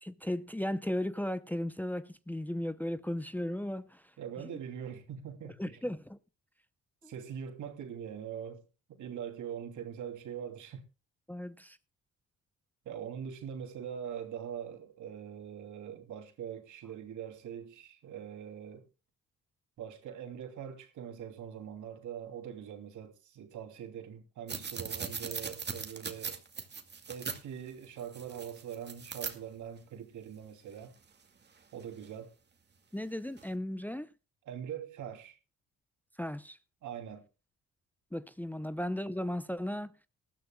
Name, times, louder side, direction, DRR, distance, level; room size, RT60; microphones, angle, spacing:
voice 1, 0.0-4.0 5.4-6.2 7.0-7.1 11.3-11.8 32.9-34.1 36.2-36.6 38.1-39.9, left 1 dB, 5° left, 0.7 m, -36 dB
voice 2, 4.2-5.8 7.0-8.6 9.0-10.8 12.8-18.8 19.8-26.4 27.1-30.9 31.7-32.3 34.4-35.4 36.8-37.2, right 8 dB, 75° right, 3.1 m, -42 dB
sound 1, 24.5-27.4 28.0-29.3 31.8-32.1 33.4-33.5, right 5 dB, 35° right, 2.3 m, -39 dB
20.0 x 13.5 x 2.3 m
cardioid pair, 90°, 30 cm